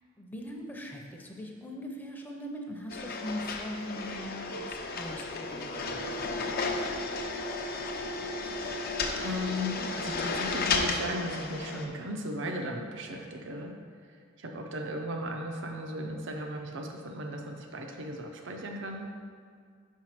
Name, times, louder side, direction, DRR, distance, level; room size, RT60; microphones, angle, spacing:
voice 1, 0.2-6.4, equal, 10° left, 1 dB, 0.6 m, -41 dB
sound 1, 2.9-11.9, left 3 dB, 50° left, 0.6 m, -33 dB
voice 2, 9.1-13.7 14.4-19.1, equal, 65° right, 2 dB, 0.6 m, -36 dB
5.6 x 4.5 x 5.8 m, 2.1 s
head